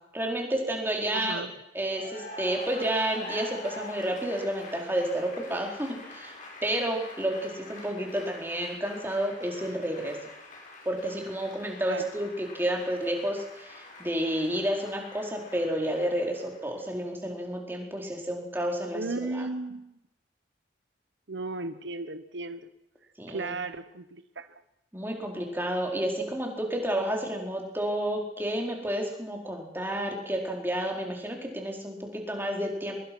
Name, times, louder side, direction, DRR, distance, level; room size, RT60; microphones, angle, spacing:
voice 1, 0.1-1.4 1.7-6.3 6.6-10.2 10.8-19.5 23.2-23.5 24.9-32.9, right 1 dB, 10° right, 1 dB, 4.3 m, -30 dB
voice 2, 1.1-1.5 11.9-12.1 18.9-20.0 21.3-22.7 23.3-24.5, right 3 dB, 70° right, 11 dB, 1.1 m, -35 dB
Cheering / Applause, 1.9-16.8, left 2 dB, 40° left, 6.7 m, -45 dB
23.0 x 22.0 x 6.2 m, 0.87 s
head